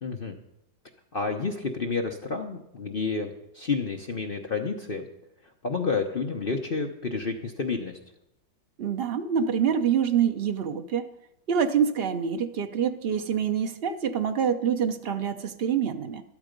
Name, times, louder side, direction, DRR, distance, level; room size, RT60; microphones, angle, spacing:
voice 1, 0.0-0.4 1.1-5.0 5.6-7.9, left 4 dB, 40° left, 3 dB, 0.8 m, -30 dB
voice 2, 8.8-11.1 11.5-16.2, right 7 dB, 60° right, 7 dB, 0.6 m, -26 dB
12.5 x 12.0 x 5.2 m, 0.83 s
omnidirectional pair, 2.0 m